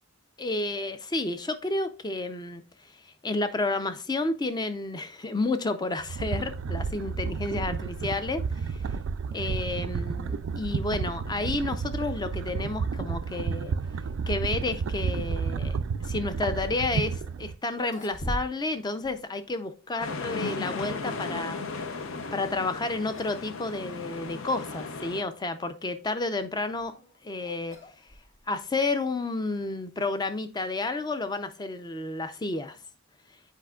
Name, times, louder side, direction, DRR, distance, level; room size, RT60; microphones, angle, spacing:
voice 1, 0.4-8.8 9.3-13.7 14.3-15.8 16.0-22.0 22.3-26.9 27.2-27.8 28.5-32.8, left 2 dB, 20° left, 0.5 m, -31 dB
sound 1, 6.0-17.5, right 5 dB, 65° right, 0.3 m, -31 dB
sound 2, 17.7-18.8 19.0-19.2 20.0-20.8 22.6-22.8 23.1-23.4 23.7-23.8 24.6-24.7 26.5-28.6, equal, 35° left, 1.0 m, -40 dB
sound 3, 20.0-25.2, left 4 dB, 75° left, 0.7 m, -36 dB
8.3 x 5.0 x 2.3 m
head